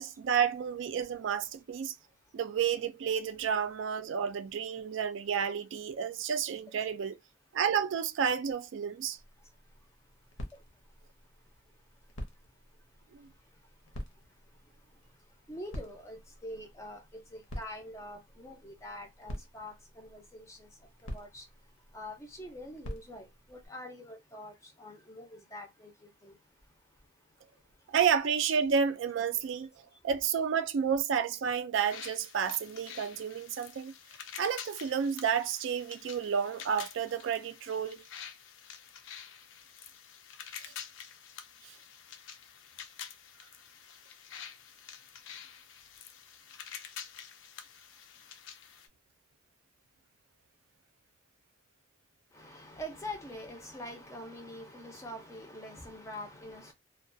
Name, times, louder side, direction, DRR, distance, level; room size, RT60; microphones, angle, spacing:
voice 1, 0.0-1.9 2.3-7.1 7.5-9.2 13.1-13.3 27.9-29.7 30.0-33.9 34.4-38.1 41.6-41.8, right 7 dB, 65° right, 0.3 m, -31 dB
sound 1, 9.2-23.7, equal, 85° left, 0.7 m, -48 dB
voice 2, 15.5-20.7 21.1-21.4 21.9-24.5 24.8-25.9 26.2-26.3 52.3-56.7, left 1 dB, 15° left, 0.5 m, -45 dB
sound 2, 31.9-48.9, left 8 dB, 70° left, 0.4 m, -48 dB
2.3 x 2.2 x 2.5 m
head